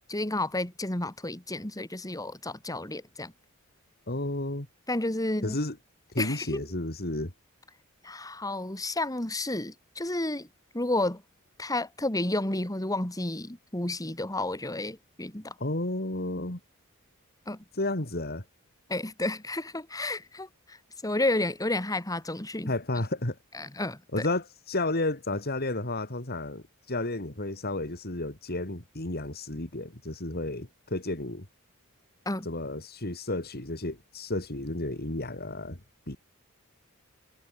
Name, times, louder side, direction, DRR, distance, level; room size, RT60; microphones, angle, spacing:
voice 1, 0.1-3.3 4.9-5.6 6.2-6.6 8.0-10.5 10.7-11.2 11.6-15.5 17.5-17.6 18.9-20.8 21.0-22.7 23.5-24.3 32.3-32.5, left 2 dB, 15° left, 2.4 m, -31 dB
voice 2, 4.1-4.7 5.4-5.8 6.1-7.3 15.6-16.6 17.7-18.4 22.7-23.4 24.1-31.4 32.4-35.8 36.1-36.2, left 2 dB, 45° left, 3.4 m, -32 dB
head